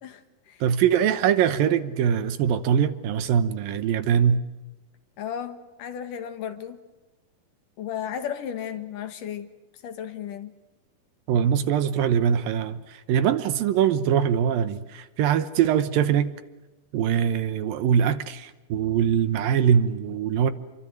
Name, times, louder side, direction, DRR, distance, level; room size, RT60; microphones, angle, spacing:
voice 1, 0.0-0.6 5.2-6.8 7.8-9.5 9.8-10.5, left 9 dB, 65° left, 2.9 m, -34 dB
voice 2, 0.6-4.4 11.3-16.3 16.9-20.5, right 8 dB, 75° right, 2.7 m, -22 dB
28.5 x 24.0 x 7.7 m
omnidirectional pair, 4.4 m